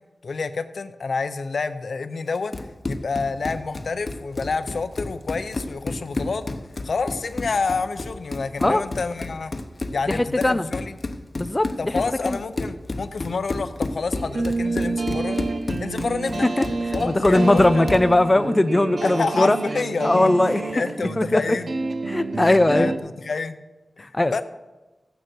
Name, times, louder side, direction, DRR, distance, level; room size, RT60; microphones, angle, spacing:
voice 1, 0.2-2.5 2.9-6.4 6.8-9.5 9.9-11.0 11.8-15.5 15.8-16.5 16.9-17.9 19.0-21.7 22.4-23.6 24.0-24.4, left 4 dB, 75° left, 10 dB, 0.7 m, -28 dB
Run, 2.3-18.1, left 2 dB, 45° left, 0.9 m, -31 dB
voice 2, 10.1-10.7 11.4-12.4 16.4-16.6 17.0-19.6 20.0-20.7 21.0-21.6 22.1-22.9 24.0-24.4, left 1 dB, 20° left, 11 dB, 0.4 m, -20 dB
sound 1, 14.1-23.0, right 3 dB, 65° right, 0.9 m, -29 dB
14.5 x 9.3 x 4.5 m, 1.1 s
wide cardioid pair, 95°, 0 cm